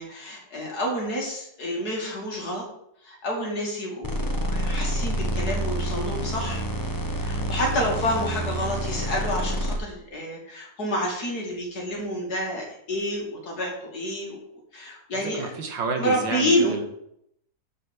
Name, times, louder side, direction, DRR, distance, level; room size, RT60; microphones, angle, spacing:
voice 1, 0.0-2.6 3.0-6.6 7.2-14.4 14.7-15.4 16.0-16.8, equal, 55° left, -1 dB, 3.0 m, -28 dB
sound 1, 4.0-9.8, right 1 dB, 15° left, 0.8 m, -28 dB
voice 2, 15.1-16.8, right 4 dB, 85° right, 4 dB, 2.2 m, -30 dB
7.4 x 5.5 x 7.4 m, 0.74 s
omnidirectional pair, 2.0 m